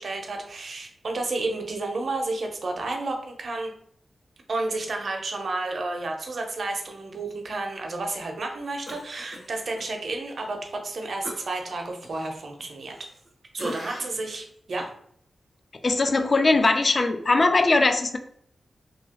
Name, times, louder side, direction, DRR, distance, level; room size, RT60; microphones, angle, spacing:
voice 1, 0.0-3.7 4.5-13.0 13.5-14.9, right 2 dB, 55° right, 2 dB, 0.5 m, -31 dB
Cough, 8.9-9.9 10.3-10.4 11.2-13.3 13.6-14.3 14.8-14.9, equal, 65° left, 1.3 m, -41 dB
voice 2, 15.7-18.2, left 3 dB, 35° left, 7 dB, 0.3 m, -20 dB
2.8 x 2.7 x 2.8 m, 0.64 s
wide cardioid pair, 160°, 0 cm